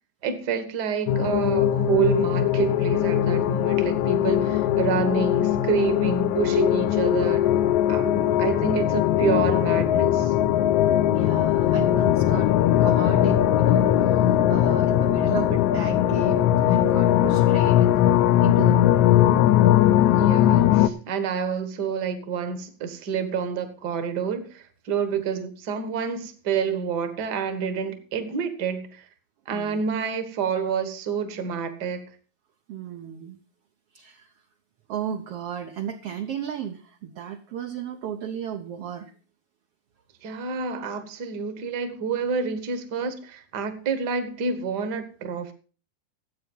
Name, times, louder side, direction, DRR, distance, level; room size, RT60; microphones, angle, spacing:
voice 1, 0.2-7.5 7.9-10.3 20.2-29.1 29.5-32.1 40.2-45.5, right 6 dB, 50° right, 1.3 m, -28 dB
sound 1, 1.1-20.9, left 12 dB, 75° left, 1.8 m, -20 dB
voice 2, 8.2-8.7 11.1-12.5 12.8-19.0 20.2-20.4 25.1-25.2 29.5-29.8 32.7-33.4 33.9-34.3 34.9-39.1, right 9 dB, 75° right, 1.4 m, -35 dB
14.0 x 8.4 x 5.4 m
omnidirectional pair, 3.9 m